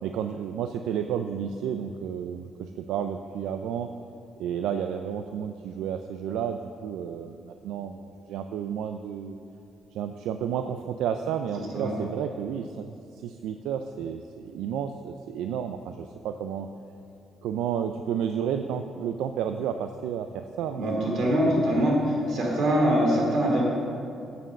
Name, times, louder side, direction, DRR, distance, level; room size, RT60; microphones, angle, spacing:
voice 1, 0.0-3.9 4.4-9.4 9.9-16.7 17.4-21.2 21.4-22.0, right 8 dB, 90° right, 8 dB, 0.3 m, -31 dB
voice 2, 11.6-11.9 20.7-23.6, equal, 70° right, -2 dB, 2.7 m, -23 dB
9.1 x 6.9 x 6.4 m, 2.6 s
cardioid pair, 90°, 0 cm